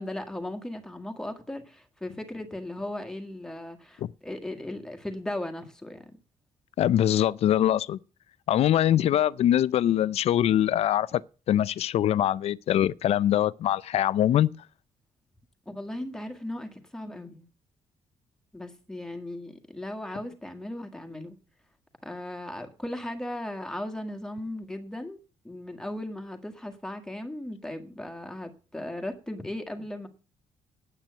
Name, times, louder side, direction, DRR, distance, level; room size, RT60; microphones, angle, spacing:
voice 1, 0.0-6.2 15.7-17.5 18.5-21.4 22.0-25.2 25.4-30.1, left 1 dB, 5° left, 1.8 m, -37 dB
voice 2, 6.8-8.0 8.5-11.2 11.5-14.5, left 11 dB, 65° left, 0.5 m, -23 dB
9.1 x 9.1 x 8.0 m
cardioid pair, 155°, 12 cm